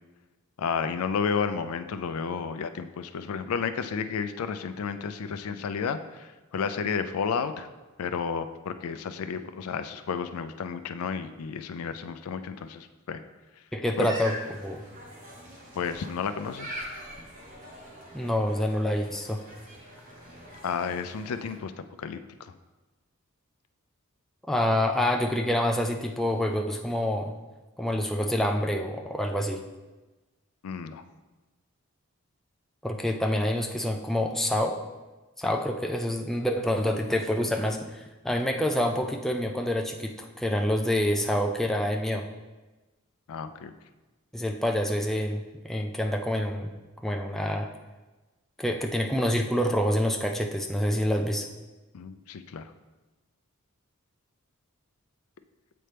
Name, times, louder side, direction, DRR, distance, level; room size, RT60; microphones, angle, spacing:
voice 1, 0.6-7.7 8.0-13.2 14.0-14.1 15.7-16.8 20.6-21.7 22.0-22.5 30.6-31.0 43.3-43.7 51.9-52.7, left 6 dB, 85° left, 10 dB, 0.4 m, -32 dB
voice 2, 13.7-14.3 14.6-14.8 18.1-19.4 24.5-27.3 27.8-29.6 32.8-34.8 35.4-42.3 44.3-46.7 47.0-47.7 48.6-51.5, left 1 dB, ahead, 2 dB, 0.3 m, -27 dB
sound 1, 14.0-21.6, equal, 40° right, 1.1 m, -43 dB
7.8 x 4.3 x 3.3 m, 1.2 s
head